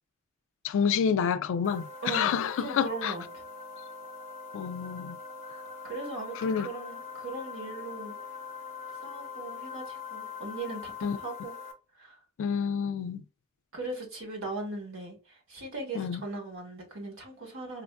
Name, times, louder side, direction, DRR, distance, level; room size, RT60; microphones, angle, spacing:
voice 1, 0.6-3.1 4.5-5.2 6.4-6.7 11.0-11.2 12.4-13.2 15.9-16.2, left 7 dB, 65° left, 0.3 m, -28 dB
sound 1, 1.6-11.7, left 5 dB, 30° right, 0.6 m, -42 dB
voice 2, 2.0-3.4 5.8-8.2 9.0-10.9 11.2-11.6 12.0-12.2 13.7-17.8, right 3 dB, 65° right, 1.3 m, -39 dB
4.4 x 2.4 x 2.2 m
head